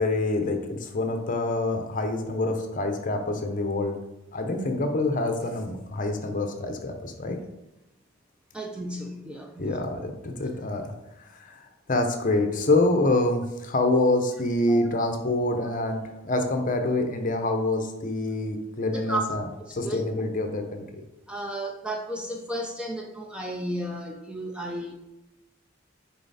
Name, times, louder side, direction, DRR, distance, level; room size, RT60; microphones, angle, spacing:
voice 1, 0.0-4.0 4.3-7.4 9.6-10.9 11.2-19.4 19.7-21.0, left 2 dB, 40° left, 5 dB, 0.8 m, -26 dB
voice 2, 8.5-9.8 14.7-14.9 18.9-19.2 19.8-20.0 21.3-25.0, right 1 dB, 5° right, 1 dB, 0.6 m, -33 dB
6.9 x 4.8 x 4.2 m, 0.92 s
head